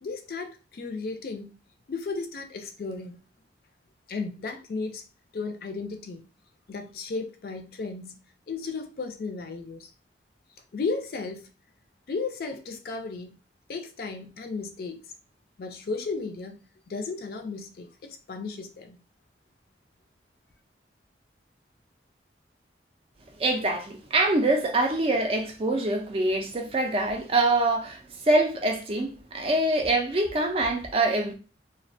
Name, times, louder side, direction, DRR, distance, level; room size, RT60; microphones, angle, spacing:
voice 1, 0.0-1.5 1.9-3.2 4.1-5.0 5.3-6.2 6.7-8.2 8.5-9.9 10.7-11.5 12.1-13.4 13.7-15.0 15.6-16.6 16.9-19.0, left 4 dB, 55° left, 0.4 m, -34 dB
voice 2, 23.4-28.0 28.3-31.3, right 2 dB, 30° right, 0.4 m, -24 dB
2.3 x 2.1 x 2.5 m
head